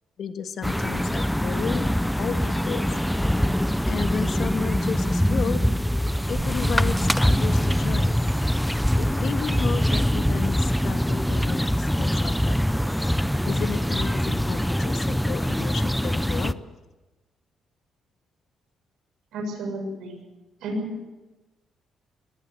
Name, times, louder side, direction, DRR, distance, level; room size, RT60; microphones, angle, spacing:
voice 1, 0.2-1.9 2.2-2.8 3.8-5.6 6.3-8.2 9.0-12.6 13.4-16.6, left 7 dB, 60° left, 8 dB, 1.7 m, -33 dB
sound 1, 0.6-16.5, equal, 5° left, 0.7 m, -23 dB
sound 2, 3.9-4.1 4.4-4.8 5.3-8.4 9.1-9.2, right 4 dB, 45° right, 5.4 m, -42 dB
voice 2, 19.3-20.2 20.6-21.1, equal, 80° right, 4 dB, 6.8 m, -32 dB
21.5 x 16.5 x 8.2 m, 1.1 s
cardioid pair, 90°, 0 cm